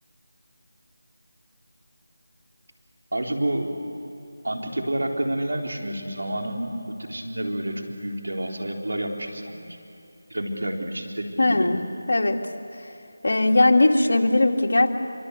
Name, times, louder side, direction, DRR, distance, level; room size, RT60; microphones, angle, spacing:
voice 1, 3.1-3.8 4.4-9.6 10.3-11.7, right 1 dB, 80° right, 1 dB, 4.1 m, -29 dB
voice 2, 11.4-11.8 12.1-12.4 13.2-14.9, left 2 dB, 65° left, 2 dB, 2.4 m, -19 dB
26.0 x 24.0 x 8.4 m, 2.8 s
figure-of-eight pair, 170°, 0 cm